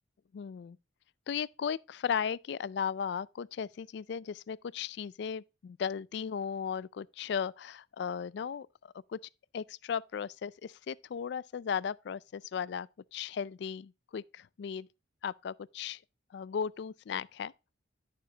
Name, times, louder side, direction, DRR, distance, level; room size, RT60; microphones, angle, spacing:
voice 1, 0.3-0.8 1.3-9.2 9.5-14.9 15.2-16.0 16.3-17.5, left 7 dB, 60° left, 0.3 m, -36 dB
11.5 x 6.7 x 2.8 m
head